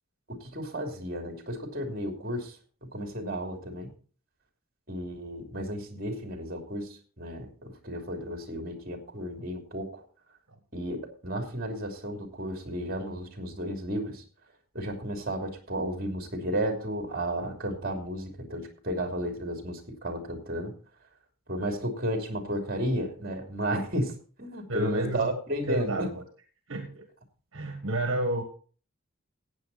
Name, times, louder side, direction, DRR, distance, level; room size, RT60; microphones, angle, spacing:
voice 1, 0.3-2.6 2.8-3.9 4.9-10.0 10.7-14.2 14.7-20.7 21.5-24.1 24.4-26.1, right 1 dB, 45° right, 5 dB, 2.9 m, -33 dB
voice 2, 24.7-25.3 25.7-26.2 26.7-27.1 27.5-28.4, right 1 dB, 65° right, 6 dB, 1.5 m, -31 dB
15.0 x 8.9 x 4.1 m, 0.41 s
head